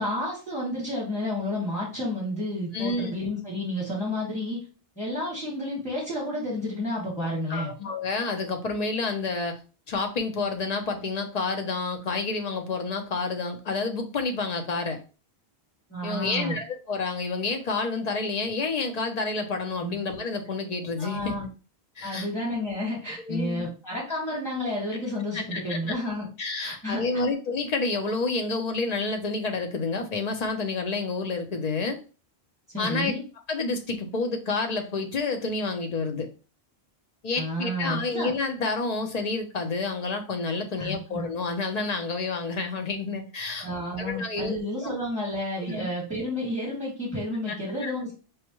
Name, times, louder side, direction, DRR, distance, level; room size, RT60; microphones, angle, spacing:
voice 1, 0.0-4.6 5.0-7.7 15.9-16.6 19.8-20.0 21.0-21.5 22.0-26.3 26.6-27.2 32.7-33.3 37.4-38.3 40.8-41.3 43.6-48.1, left 1 dB, 15° left, -6 dB, 2.0 m, -31 dB
voice 2, 2.7-3.1 7.5-9.6 9.9-15.0 16.0-21.4 22.0-22.3 23.3-23.7 25.3-25.8 26.4-32.0 32.8-33.1 33.5-36.3 37.2-43.7 44.0-44.9 45.7-45.9 47.5-47.6 47.8-47.9, left 3 dB, 45° left, 5 dB, 0.7 m, -29 dB
4.7 x 2.1 x 3.0 m, 0.34 s
omnidirectional pair, 1.1 m